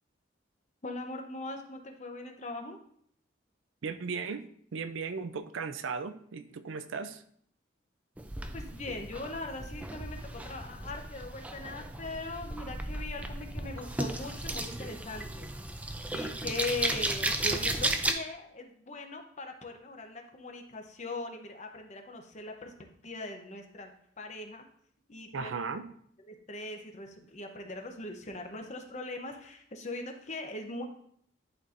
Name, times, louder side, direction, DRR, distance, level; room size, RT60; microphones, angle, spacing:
voice 1, 0.8-2.8 8.5-15.5 16.1-22.7 23.0-23.9 24.2-24.6 25.1-25.5 26.3-30.9, left 2 dB, 35° left, 4 dB, 0.8 m, -40 dB
voice 2, 3.8-4.4 4.7-7.2 25.3-25.9, right 5 dB, 75° right, 11 dB, 0.5 m, -36 dB
sound 1, 8.2-18.1, right 1 dB, 5° right, 0.4 m, -35 dB
11.0 x 4.2 x 2.6 m, 0.65 s
head